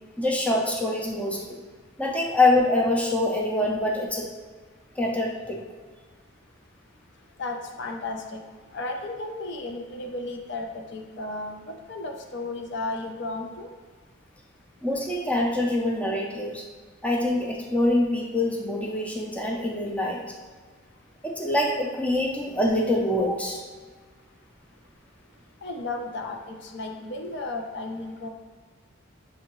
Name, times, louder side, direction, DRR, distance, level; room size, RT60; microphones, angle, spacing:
voice 1, 0.2-1.6 2.0-4.3 5.0-5.6 14.8-16.6 17.0-20.3 21.2-23.6, left 1 dB, 5° left, -1 dB, 0.5 m, -25 dB
voice 2, 7.4-8.4 8.7-13.7 25.6-28.3, left 2 dB, 60° left, 3 dB, 0.5 m, -34 dB
6.5 x 2.7 x 2.9 m, 1.5 s
head